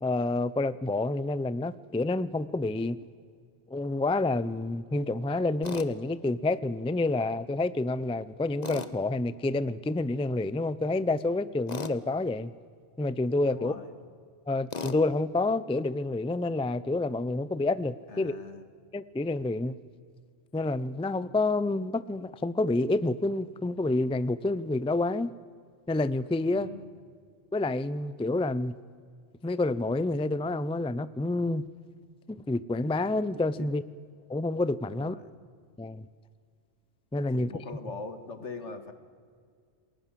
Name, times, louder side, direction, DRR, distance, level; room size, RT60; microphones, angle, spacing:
voice 1, 0.0-3.0 3.7-12.5 13.0-13.7 14.5-18.3 18.9-19.8 20.5-25.3 25.9-26.7 27.5-28.7 29.4-31.6 32.3-33.8 34.3-35.1 35.8-36.1 37.1-37.5, left 2 dB, 10° left, 16 dB, 0.4 m, -28 dB
Tools, 5.6-5.9 8.6-8.9 11.7-12.0 14.7-15.0, left 4 dB, 35° left, 1.2 m, -36 dB
voice 2, 13.5-14.0 18.1-18.7 26.5-26.9 33.6-33.7 34.9-35.3 37.3-38.9, left 3 dB, 75° left, 9 dB, 2.1 m, -42 dB
28.5 x 20.5 x 7.5 m, 2.1 s
omnidirectional pair, 1.2 m